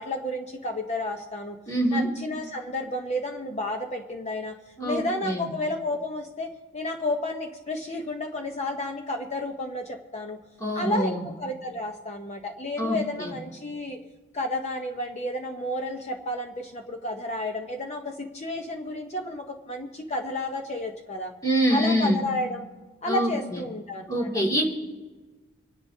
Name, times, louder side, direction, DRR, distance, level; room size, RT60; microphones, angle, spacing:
voice 1, 0.0-1.6 1.9-4.6 4.8-6.5 6.7-10.4 10.7-11.1 11.4-14.0 14.3-21.3 21.7-22.7 23.0-24.4, left 1 dB, 30° left, 3 dB, 0.8 m, -31 dB
voice 2, 1.7-2.1 4.8-5.5 10.6-11.2 12.8-13.3 21.4-22.2 23.1-23.6 24.1-24.7, equal, 15° left, -4 dB, 2.2 m, -25 dB
26.5 x 10.5 x 2.7 m, 1.3 s
head